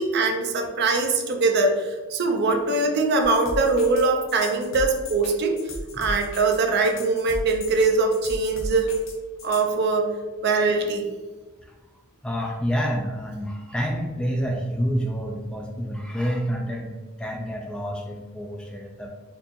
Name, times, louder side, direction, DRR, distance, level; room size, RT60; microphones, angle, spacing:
voice 1, 0.0-5.6 6.0-8.9 9.4-10.2 10.4-11.1, right 3 dB, 50° right, 3 dB, 0.5 m, -22 dB
sound 1, 3.2-9.7, left 1 dB, 60° left, 0.7 m, -36 dB
voice 2, 12.2-19.1, equal, 5° left, 0 dB, 0.3 m, -28 dB
4.5 x 2.8 x 2.7 m, 1.3 s
head